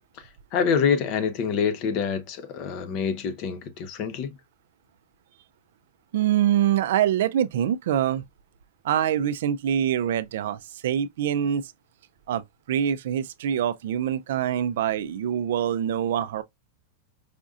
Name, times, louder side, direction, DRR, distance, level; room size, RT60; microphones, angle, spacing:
voice 1, 0.2-4.3, left 6 dB, 40° left, 0.6 m, -26 dB
voice 2, 6.1-8.2 8.8-11.7 12.3-12.4 12.7-16.4, right 10 dB, 70° right, 0.4 m, -24 dB
5.0 x 2.6 x 2.4 m
supercardioid pair, 150°, 0 cm